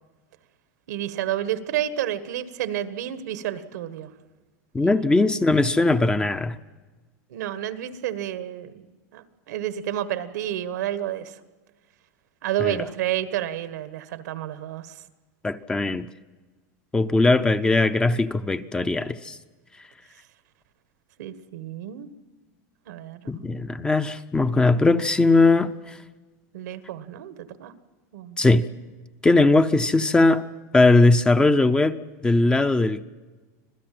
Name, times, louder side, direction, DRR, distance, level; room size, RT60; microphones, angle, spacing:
voice 1, 0.9-4.1 4.8-5.2 7.3-8.9 9.1-11.4 12.4-14.9 21.2-22.1 22.9-23.3 26.5-27.7 28.1-28.4, right 12 dB, 90° right, 13 dB, 1.5 m, -30 dB
voice 2, 4.7-6.6 12.6-12.8 15.4-16.1 16.9-19.4 23.3-25.7 28.4-28.7 29.2-30.4 30.7-33.0, left 2 dB, 10° left, 11 dB, 0.6 m, -19 dB
26.0 x 16.0 x 7.7 m, 1.3 s
supercardioid pair, 145°, 9 cm